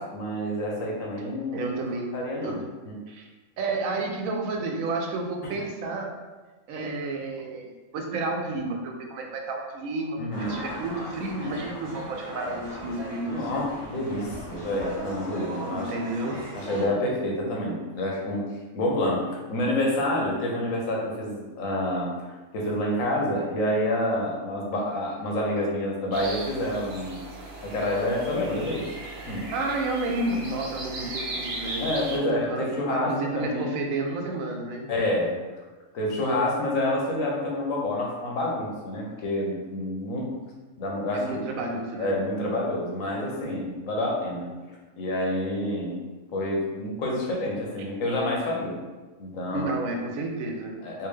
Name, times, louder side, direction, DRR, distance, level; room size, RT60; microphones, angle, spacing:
voice 1, 0.0-1.8 2.1-3.0 5.4-5.5 10.2-10.6 13.3-15.9 16.5-18.5 18.7-22.1 22.5-27.3 27.6-28.9 29.3-29.5 31.8-33.7 34.9-35.4 35.9-40.3 40.8-41.4 42.0-44.5 45.0-46.0 46.3-48.8 49.2-49.7 50.8-51.1, left 1 dB, 80° left, -2 dB, 1.2 m, -28 dB
voice 2, 1.5-2.6 3.1-3.3 3.6-6.1 6.7-13.7 15.6-16.4 29.5-31.9 32.2-34.9 41.1-42.1 49.5-50.8, right 2 dB, 85° right, 1 dB, 1.1 m, -31 dB
sound 1, 10.3-16.9, equal, 25° right, 0.7 m, -38 dB
sound 2, 26.1-32.2, right 2 dB, 60° right, 0.9 m, -37 dB
3.5 x 2.6 x 3.2 m, 1.2 s
omnidirectional pair, 1.4 m